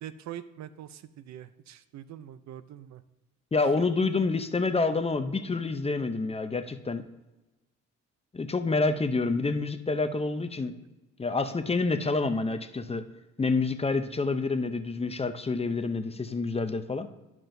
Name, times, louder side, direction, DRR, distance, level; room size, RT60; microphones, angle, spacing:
voice 1, 0.0-3.0 3.8-3.9, right 11 dB, 65° right, 14 dB, 0.5 m, -43 dB
voice 2, 3.5-7.1 8.3-10.7 11.2-13.1 13.4-17.1, left 3 dB, 20° left, 9 dB, 0.6 m, -28 dB
12.5 x 6.0 x 2.6 m, 1.1 s
cardioid pair, 90°, 30 cm